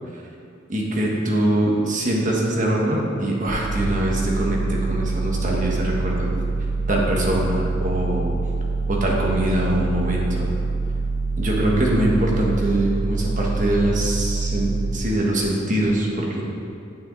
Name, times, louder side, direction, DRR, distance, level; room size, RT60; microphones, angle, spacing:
voice 1, 0.7-6.3 6.9-8.3 8.9-10.5 11.4-16.4, right 1 dB, 40° right, -2 dB, 1.4 m, -23 dB
sound 1, 3.5-14.9, right 3 dB, 85° right, 1.8 m, -25 dB
9.0 x 8.8 x 4.0 m, 2.6 s
head